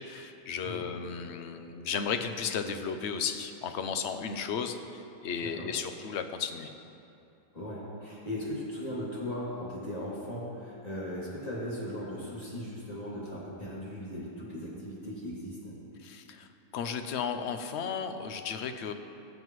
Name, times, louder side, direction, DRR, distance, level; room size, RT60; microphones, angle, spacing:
voice 1, 0.0-6.7 16.0-16.5 16.7-18.9, left 6 dB, 60° left, 7 dB, 0.8 m, -34 dB
voice 2, 7.5-15.7, equal, 25° left, -8 dB, 2.9 m, -38 dB
19.5 x 7.6 x 3.1 m, 2.8 s
omnidirectional pair, 1.5 m